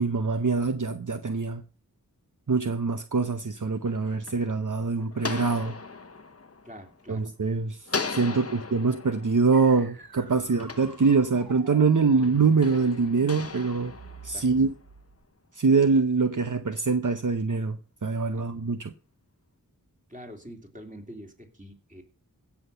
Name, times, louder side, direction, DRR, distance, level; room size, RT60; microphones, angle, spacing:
voice 1, 0.0-1.6 2.5-5.8 7.1-7.8 8.1-13.9 14.2-14.7 15.5-18.9, right 4 dB, 60° right, 0.8 m, -24 dB
sound 1, 3.7-7.4 7.9-11.6 12.2-14.9, left 4 dB, 40° left, 0.9 m, -38 dB
voice 2, 6.6-7.3 8.3-8.6 10.5-10.6 12.1-12.2 14.3-14.4 18.3-18.5 20.1-22.0, equal, 20° right, 3.0 m, -45 dB
sound 2, 9.5-15.2, right 4 dB, 90° right, 1.4 m, -49 dB
16.0 x 5.9 x 6.7 m
wide cardioid pair, 50°, 36 cm